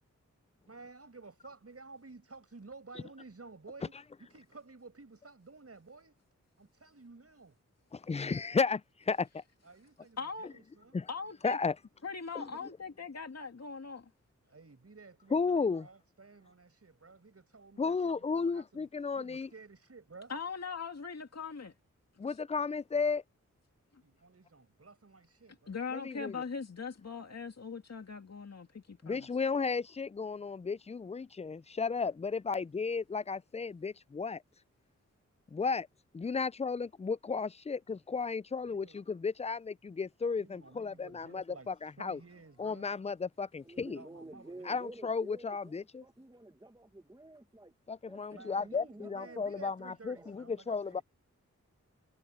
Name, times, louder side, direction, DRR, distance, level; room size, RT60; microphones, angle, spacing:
voice 1, 0.7-3.9 4.2-6.2 6.6-7.6 9.6-11.0 14.5-18.9 19.1-20.3 24.0-25.8 38.6-39.0 40.4-42.9 43.8-44.8 48.3-51.0, right 3 dB, 50° right, 6.6 m, -53 dB
voice 2, 7.9-9.4 10.9-11.1 11.4-11.7 12.3-12.5 15.3-15.9 17.8-19.5 22.2-23.2 25.9-26.4 29.0-34.4 35.5-35.9 36.1-42.2 42.6-44.0 44.7-46.0 47.9-51.0, left 5 dB, 20° left, 0.4 m, -34 dB
voice 3, 10.2-10.5 11.1-11.6 12.0-14.1 20.3-21.7 25.7-29.3, left 5 dB, 55° left, 2.4 m, -40 dB
voice 4, 43.6-47.7 48.1-49.4 49.8-50.3, right 2 dB, 15° right, 1.6 m, -51 dB
cardioid pair, 45°, 31 cm